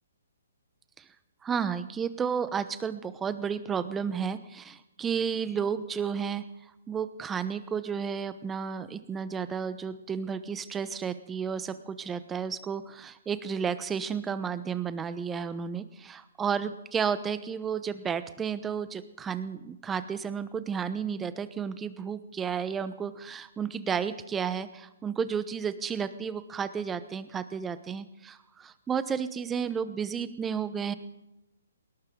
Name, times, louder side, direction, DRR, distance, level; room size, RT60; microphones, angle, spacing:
voice 1, 1.4-6.4 6.9-30.9, right 7 dB, 15° right, 13 dB, 1.0 m, -32 dB
20.5 x 18.5 x 3.8 m, 0.94 s
hypercardioid pair, 140°, 0 cm